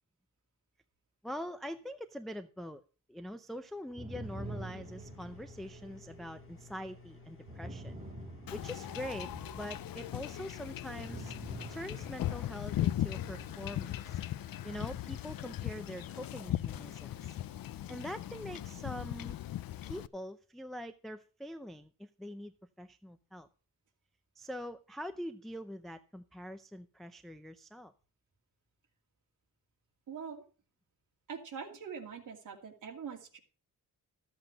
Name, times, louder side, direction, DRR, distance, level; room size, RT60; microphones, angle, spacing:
voice 1, 1.2-2.8 3.1-7.9 8.5-11.3 11.7-14.2 14.6-17.4 17.9-19.4 19.8-23.5 24.4-27.9, equal, ahead, 8 dB, 0.5 m, -44 dB
sound 1, 3.9-15.3, right 1 dB, 20° right, 2.3 m, -48 dB
sound 2, 4.2-18.8, left 5 dB, 40° left, 1.0 m, -56 dB
Wind / Ocean / Boat Water vehicle, 8.5-20.1, left 13 dB, 75° left, 0.6 m, -38 dB
voice 2, 30.1-30.4 31.3-33.4, right 6 dB, 60° right, 0 dB, 2.5 m, -43 dB
13.5 x 8.0 x 5.1 m, 0.36 s
wide cardioid pair, 160°, 34 cm